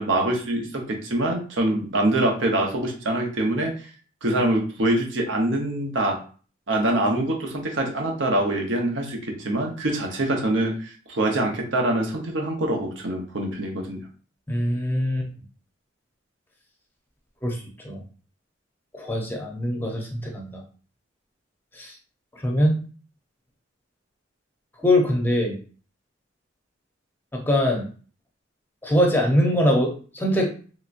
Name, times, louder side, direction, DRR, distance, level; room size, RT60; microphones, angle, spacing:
voice 1, 0.0-3.9 4.2-6.2 6.7-14.0, right 1 dB, 70° right, 1 dB, 0.8 m, -24 dB
voice 2, 14.5-15.3 17.4-17.6 17.8-18.0 19.0-20.6 21.7-21.9 22.4-22.8 24.8-25.6 27.3-27.9 28.8-30.5, left 1 dB, 10° left, 0 dB, 0.7 m, -22 dB
3.2 x 2.9 x 2.5 m, 0.40 s
head